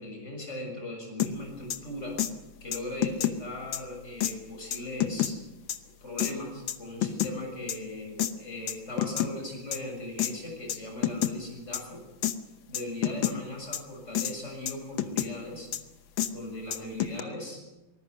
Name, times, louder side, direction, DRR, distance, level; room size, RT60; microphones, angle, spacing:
voice 1, 0.0-2.2 2.6-5.4 6.0-12.0 12.7-15.7 16.3-17.6, left 1 dB, 35° left, 1 dB, 7.4 m, -39 dB
sound 1, 1.2-1.3 1.7-1.8 2.2-2.3 2.7-3.4 3.7-3.8 4.2-4.3 4.7-5.3 5.7-5.8 6.2-6.3 6.7-7.3 7.7-7.8 8.2-8.3 8.7-9.3 9.7-9.8 10.2-10.3 10.7-10.8 11.0-11.3 11.7-11.8 12.2-12.3 12.7-13.3 13.7-13.8 14.1-14.3 14.7-15.3 15.7-15.8 16.2-16.3 16.7-17.2, left 11 dB, 75° left, 1.8 m, -28 dB
25.5 x 19.5 x 6.3 m, 1.1 s
omnidirectional pair, 2.2 m